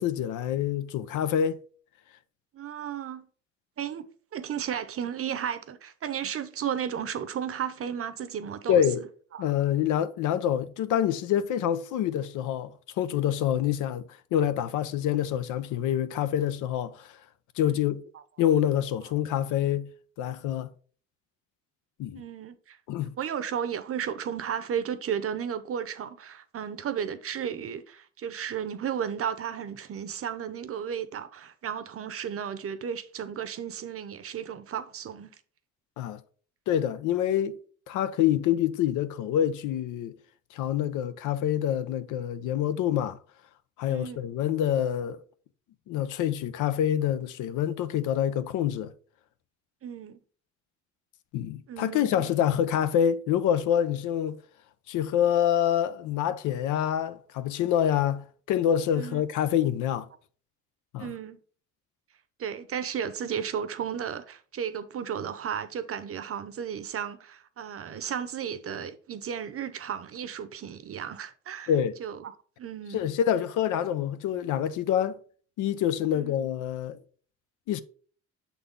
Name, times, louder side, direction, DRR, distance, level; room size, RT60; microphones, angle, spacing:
voice 1, 0.0-1.6 8.7-9.0 9.4-17.2 17.6-18.0 18.4-19.9 20.2-20.7 22.0-22.2 22.9-23.1 36.0-36.2 36.7-40.2 40.5-43.2 43.8-45.2 45.9-48.9 51.3-54.4 54.9-60.1 60.9-61.1 71.7-72.0 72.9-75.2 75.6-77.0 77.7-77.8, left 10 dB, 90° left, 0.6 m, -26 dB
voice 2, 2.5-3.2 3.8-4.1 4.3-9.1 9.3-9.4 13.2-13.4 17.6-17.9 18.1-18.2 22.2-22.8 23.2-35.4 43.9-44.2 49.8-50.2 51.7-52.3 59.0-59.2 61.0-61.4 62.4-71.7 72.0-73.1 76.1-76.5, right 8 dB, 50° right, 0.7 m, -34 dB
6.8 x 4.0 x 3.6 m
cardioid pair, 90°, 30 cm